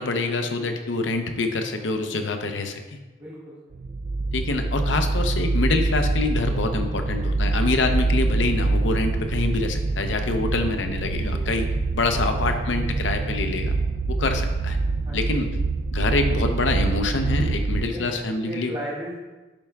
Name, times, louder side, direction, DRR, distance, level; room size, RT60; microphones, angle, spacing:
voice 1, 0.0-2.8 4.3-11.7 11.9-13.8 14.1-14.8 15.1-15.5 15.9-18.7, left 3 dB, 70° left, 6 dB, 0.7 m, -26 dB
voice 2, 3.1-3.5 11.3-11.6 12.1-12.5 15.1-15.4 17.9-18.1 18.4-19.2, right 1 dB, 25° right, -9 dB, 1.2 m, -36 dB
sound 1, 3.7-17.8, right 3 dB, 45° right, 0.4 m, -25 dB
10.0 x 3.5 x 3.5 m, 1.2 s
head